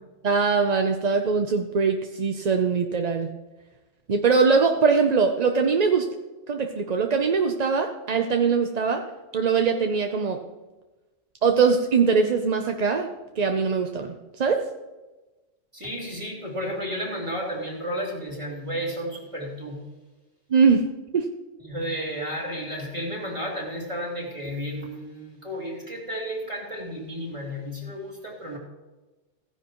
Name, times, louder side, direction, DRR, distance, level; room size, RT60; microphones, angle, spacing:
voice 1, 0.2-3.3 4.1-6.1 6.5-9.0 9.3-10.4 11.4-13.1 13.4-14.6 20.5-20.9 21.1-21.3, right 5 dB, 45° right, 4 dB, 0.6 m, -22 dB
voice 2, 15.7-19.8 21.6-28.6, equal, 25° right, -3 dB, 2.9 m, -32 dB
16.0 x 10.0 x 3.0 m, 1.2 s
omnidirectional pair, 1.3 m